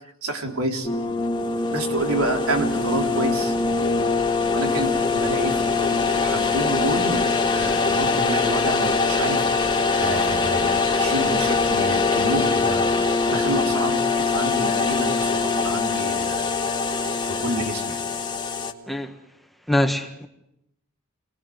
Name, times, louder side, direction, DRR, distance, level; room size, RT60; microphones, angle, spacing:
voice 1, 0.2-0.9 1.7-3.5 4.5-12.9 13.2-16.5 17.3-18.0, right 2 dB, 80° right, 3.8 m, -28 dB
sound 1, 0.8-18.7, left 4 dB, 20° left, 1.8 m, -23 dB
voice 2, 19.7-20.3, left 1 dB, ahead, 1.6 m, -23 dB
29.0 x 20.0 x 9.5 m
head